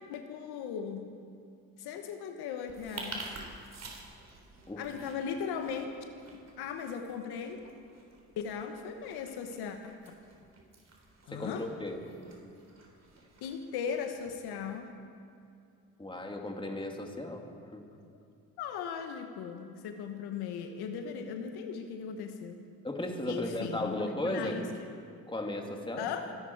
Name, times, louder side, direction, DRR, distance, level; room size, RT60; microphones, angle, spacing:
voice 1, 0.1-1.1 1.8-3.4 4.8-5.9 6.6-7.6 8.4-9.8 11.3-11.7 13.4-14.9 18.6-22.6 23.3-24.9 26.0-26.3, left 7 dB, 80° left, 5 dB, 1.2 m, -38 dB
sound 1, 2.6-14.7, right 3 dB, 45° right, 3.7 m, -50 dB
voice 2, 11.3-12.0 12.4-12.5 16.0-17.8 22.8-24.6 25.3-26.1, left 1 dB, 15° left, 2 dB, 2.6 m, -35 dB
25.0 x 11.0 x 4.7 m, 2.4 s
supercardioid pair, 65°, 38 cm